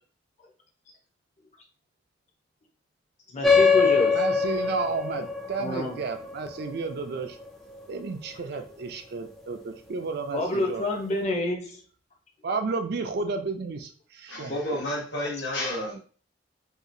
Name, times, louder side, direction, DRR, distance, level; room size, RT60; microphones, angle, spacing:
voice 1, 3.3-4.2 5.6-6.0 10.3-11.8, left 2 dB, 40° left, 1 dB, 0.7 m, -27 dB
sound 1, 3.4-8.4, left 5 dB, ahead, 0.4 m, -24 dB
voice 2, 4.1-7.4 7.9-10.9 12.4-14.6, right 4 dB, 60° right, 6 dB, 0.4 m, -32 dB
voice 3, 14.3-16.0, left 1 dB, 70° left, -3 dB, 1.2 m, -31 dB
2.8 x 2.4 x 2.6 m, 0.42 s
head